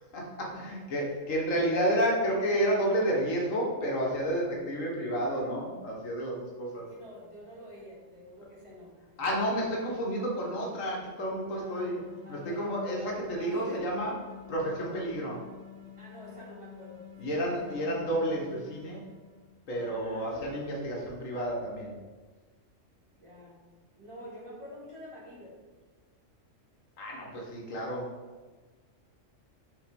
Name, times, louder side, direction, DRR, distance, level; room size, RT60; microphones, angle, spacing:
voice 1, 0.1-6.8 9.2-12.0 12.3-14.1 14.5-15.4 17.2-19.0 19.7-22.0 27.0-28.1, equal, 85° left, -2 dB, 1.7 m, -30 dB
voice 2, 6.7-9.5 11.5-11.9 12.2-13.9 16.0-17.9 19.7-20.7 23.1-23.6 24.0-25.5, equal, 25° right, -7 dB, 2.0 m, -48 dB
sound 1, 11.5-19.7, left 8 dB, 65° right, 1.1 m, -50 dB
5.7 x 3.9 x 5.2 m, 1.4 s
omnidirectional pair, 1.3 m